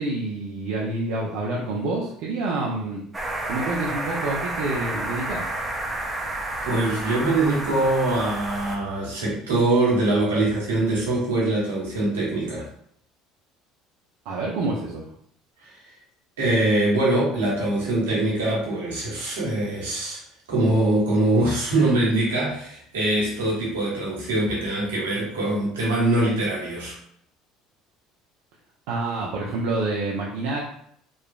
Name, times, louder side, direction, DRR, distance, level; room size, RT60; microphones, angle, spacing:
voice 1, 0.0-3.0 3.5-5.5 14.3-15.1 28.9-30.6, right 2 dB, 70° right, -3 dB, 0.5 m, -27 dB
sound 1, 3.1-8.8, right 2 dB, 20° right, 0.7 m, -30 dB
voice 2, 6.6-12.7 15.6-15.7 16.4-20.2 20.5-27.0, right 2 dB, 85° right, -5 dB, 1.0 m, -23 dB
2.9 x 2.4 x 2.3 m, 0.67 s
hypercardioid pair, 70°, 0 cm